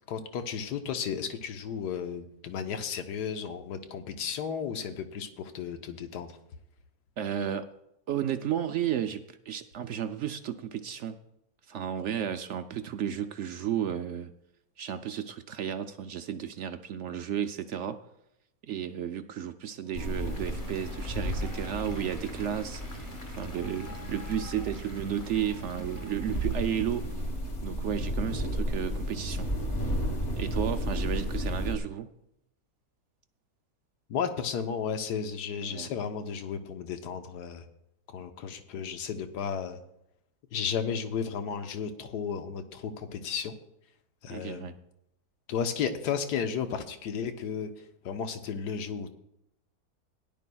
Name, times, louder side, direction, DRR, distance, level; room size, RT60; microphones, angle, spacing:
voice 1, 0.1-6.3 34.1-37.6 38.1-39.8 40.5-43.5 44.2-44.7 45.5-47.7 48.0-49.1, left 7 dB, 75° left, 7 dB, 1.5 m, -33 dB
voice 2, 7.2-7.7 8.1-11.2 11.7-14.3 14.8-18.0 18.6-22.8 23.4-27.1 27.6-29.5 30.3-32.1 35.6-35.9 38.7-38.9 44.3-44.8, right 9 dB, 80° right, 9 dB, 0.6 m, -33 dB
sound 1, 19.9-31.8, equal, 30° left, 1.5 m, -33 dB
Applause, 19.9-27.4, left 1 dB, 10° left, 1.2 m, -49 dB
17.5 x 11.0 x 2.3 m, 0.81 s
omnidirectional pair, 1.8 m